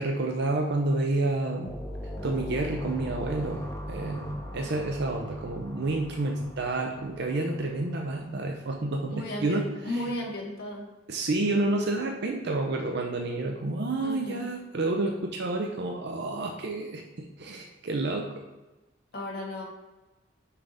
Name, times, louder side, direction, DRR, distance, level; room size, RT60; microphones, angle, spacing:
voice 1, 0.0-1.7 2.2-9.6 9.9-10.0 11.1-18.3, right 2 dB, 60° right, 2 dB, 0.6 m, -29 dB
sound 1, 1.6-8.1, equal, 15° left, 0.7 m, -39 dB
voice 2, 9.1-10.8 14.0-14.4 19.1-19.6, left 1 dB, 55° left, -3 dB, 1.5 m, -34 dB
5.7 x 3.4 x 5.2 m, 1.1 s
head